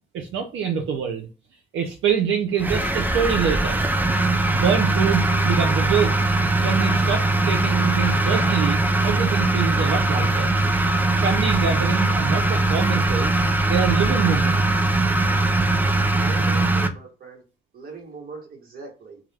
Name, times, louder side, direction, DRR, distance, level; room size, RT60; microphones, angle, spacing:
voice 1, 0.1-1.3 1.7-3.8 4.5-6.1 6.6-10.5 11.2-13.3 13.6-14.8, right 7 dB, 75° right, 0.5 m, -25 dB
sound 1, 2.6-16.9, right 2 dB, 10° right, 0.4 m, -21 dB
voice 2, 15.7-17.4 17.7-19.2, right 4 dB, 50° right, 1.1 m, -40 dB
2.2 x 2.1 x 3.2 m
cardioid pair, 90°, 20 cm